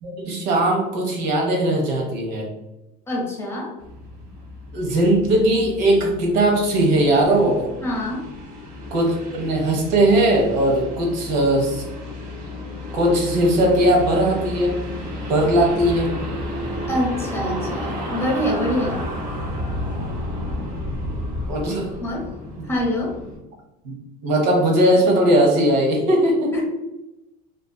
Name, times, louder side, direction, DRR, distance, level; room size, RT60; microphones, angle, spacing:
voice 1, 0.0-2.5 4.7-7.7 8.9-11.8 12.9-14.8 15.3-16.1 21.5-21.9 22.6-22.7 23.8-23.9 24.2-26.5, right 1 dB, 85° right, 0 dB, 0.8 m, -19 dB
voice 2, 3.1-3.7 7.8-8.2 16.9-19.1 22.0-22.3 22.7-23.2 26.5-26.6, left 1 dB, 10° left, -3 dB, 0.6 m, -25 dB
sound 1, 3.8-23.4, left 1 dB, 55° right, 0.9 m, -32 dB
2.5 x 2.3 x 2.2 m, 0.98 s
supercardioid pair, 130°, 21 cm